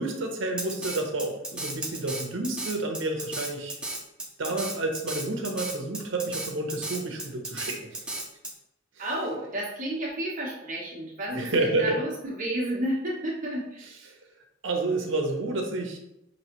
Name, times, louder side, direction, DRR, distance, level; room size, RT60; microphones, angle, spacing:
voice 1, 0.0-3.8 4.4-8.0 11.3-12.0 14.6-16.0, right 2 dB, 70° right, 4 dB, 0.8 m, -29 dB
Drum kit, 0.6-8.5, right 2 dB, 5° right, 0.5 m, -34 dB
voice 2, 9.0-14.1, right 1 dB, 40° right, -4 dB, 0.9 m, -32 dB
5.1 x 3.1 x 2.9 m, 0.85 s
head